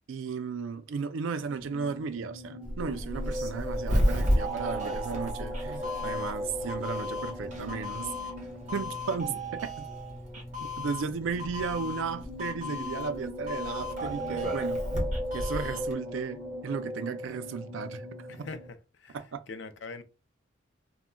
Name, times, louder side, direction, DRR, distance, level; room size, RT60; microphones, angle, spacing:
voice 1, 0.1-8.1 8.7-9.9 10.8-14.9 15.3-18.1 18.3-18.5 19.1-19.4, right 5 dB, 80° right, 0.4 m, -35 dB
sound 1, 1.4-18.7, equal, 15° left, 1.0 m, -39 dB
Child speech kid speaking, 2.6-7.9, equal, 5° right, 1.0 m, -41 dB
Doorbell, 3.1-15.9, equal, 40° right, 0.8 m, -33 dB
voice 2, 18.3-19.2 19.5-20.0, left 4 dB, 70° left, 0.4 m, -42 dB
2.2 x 2.1 x 3.6 m
head